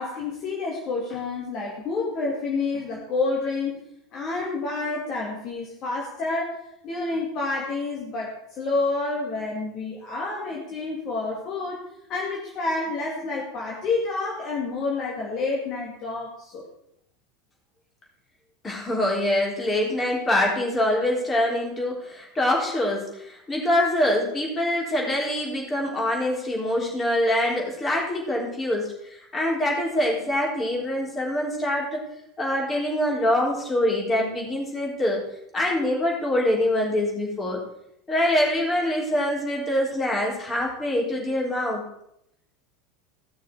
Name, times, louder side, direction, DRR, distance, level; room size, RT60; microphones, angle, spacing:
voice 1, 0.0-3.8 4.1-6.6 6.8-11.8 12.1-16.7, left 3 dB, 40° left, -3 dB, 2.2 m, -29 dB
voice 2, 18.6-32.0 32.4-35.2 35.5-37.6 38.1-41.8, left 1 dB, 20° left, -2 dB, 3.6 m, -24 dB
16.0 x 6.4 x 4.8 m, 0.77 s
figure-of-eight pair, 80°, 0 cm